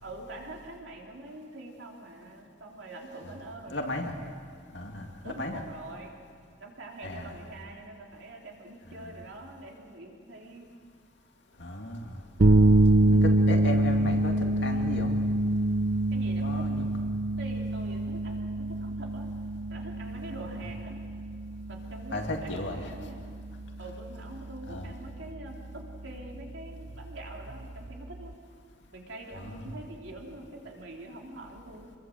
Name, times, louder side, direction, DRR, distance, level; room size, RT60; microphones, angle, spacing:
voice 1, 0.0-4.0 5.2-6.2 6.6-10.7 16.1-16.7 17.4-19.3 19.7-21.0 21.7-23.3 23.8-28.4 28.9-31.9, right 2 dB, 65° right, 0 dB, 3.5 m, -44 dB
voice 2, 3.7-4.1 4.7-5.6 7.0-7.4 11.6-12.1 13.1-14.3 14.6-15.1 16.4-16.8 22.1-22.9 24.7-24.9 29.4-29.7, left 1 dB, 60° left, 2 dB, 2.3 m, -35 dB
sound 1, 12.4-28.3, right 2 dB, 45° right, 0.6 m, -27 dB
27.0 x 21.5 x 7.9 m, 2.2 s
head